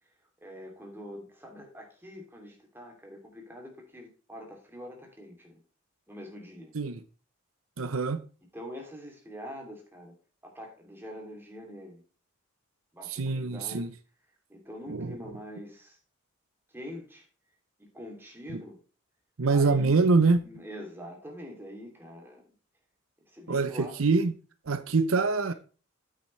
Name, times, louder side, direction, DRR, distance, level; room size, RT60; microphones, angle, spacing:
voice 1, 0.4-5.6 6.1-6.8 8.5-10.1 10.4-12.0 12.9-13.9 14.5-16.0 16.7-17.3 17.8-18.8 19.5-20.1 20.4-22.5 23.2-24.0, equal, 10° right, 2.8 m, -44 dB
voice 2, 7.8-8.2 13.1-13.9 14.9-15.2 18.5-18.6 19.4-20.4 23.5-24.3 24.7-25.5, right 4 dB, 80° right, 0.7 m, -25 dB
9.0 x 8.6 x 3.2 m
head